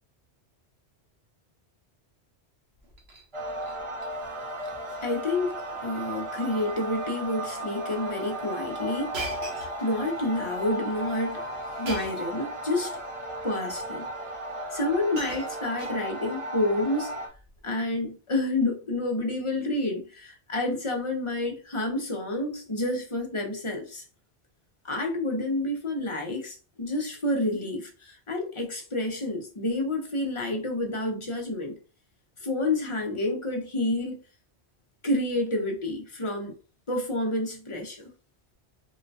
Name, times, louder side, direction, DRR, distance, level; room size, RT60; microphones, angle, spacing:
Shatter, 2.8-3.3 3.6-4.1 4.4-4.7 4.9-5.0 5.9-6.1 6.5-6.7 7.5-7.6 9.1-10.2 11.9-12.3 13.4-13.5 14.5-14.6 14.9-16.4 17.3-17.6, right 2 dB, 70° right, 1.2 m, -40 dB
sound 1, 3.3-17.3, right 1 dB, 35° right, 0.5 m, -35 dB
voice 1, 5.0-9.2 9.8-11.5 11.7-13.0 13.4-14.0 14.7-17.1 17.6-24.0 24.8-31.8 32.4-34.2 35.0-36.5 36.9-38.1, left 2 dB, 35° left, 0.6 m, -29 dB
3.8 x 2.1 x 2.6 m
omnidirectional pair, 1.1 m